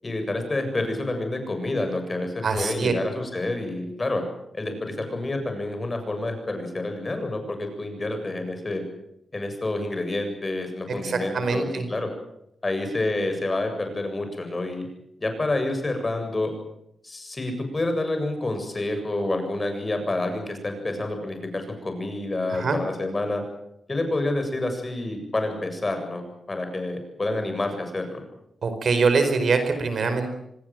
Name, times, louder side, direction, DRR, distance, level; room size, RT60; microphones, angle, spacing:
voice 1, 0.0-4.2 4.5-8.8 9.3-12.1 12.6-14.9 15.2-16.5 17.0-23.4 23.9-26.2 26.5-28.2, left 2 dB, 30° left, 6 dB, 7.6 m, -28 dB
voice 2, 2.4-2.9 11.0-11.8 22.5-22.8 28.6-30.3, right 4 dB, 65° right, 8 dB, 4.8 m, -23 dB
26.0 x 20.0 x 7.8 m, 0.80 s
cardioid pair, 90°, 0 cm